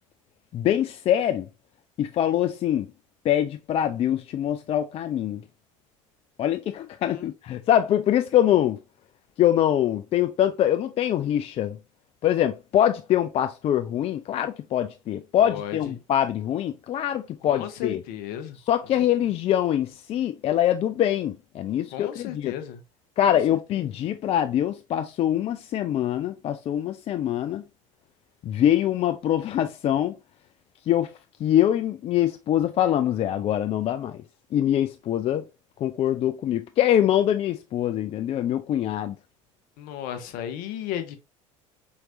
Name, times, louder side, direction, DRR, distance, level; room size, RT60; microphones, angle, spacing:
voice 1, 0.5-1.5 2.0-2.9 3.2-5.4 6.4-8.8 9.4-11.8 12.2-18.0 18.7-22.5 23.2-27.6 28.4-30.2 30.9-31.1 31.4-34.2 34.5-35.4 35.8-39.2, left 11 dB, 35° left, 0.4 m, -24 dB
voice 2, 7.0-7.3 15.4-15.8 17.4-18.6 21.9-22.8 23.2-23.9 39.8-41.2, left 10 dB, 60° left, 0.9 m, -35 dB
4.5 x 3.1 x 2.5 m
hypercardioid pair, 70°, 17 cm